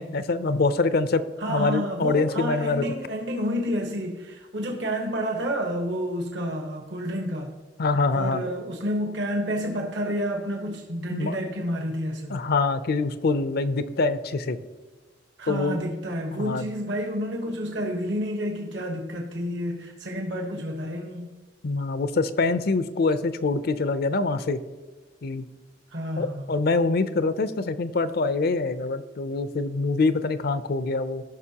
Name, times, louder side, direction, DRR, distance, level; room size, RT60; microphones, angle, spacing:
voice 1, 0.0-2.9 7.8-8.4 11.1-11.4 12.3-14.6 15.5-15.8 16.3-16.7 21.6-24.6 25.2-25.5 26.2-31.2, left 3 dB, 55° left, 13 dB, 0.5 m, -25 dB
voice 2, 1.4-7.5 8.1-12.4 15.4-21.3 25.9-26.5, equal, 70° right, 2 dB, 1.2 m, -29 dB
15.5 x 5.8 x 2.9 m, 1.3 s
head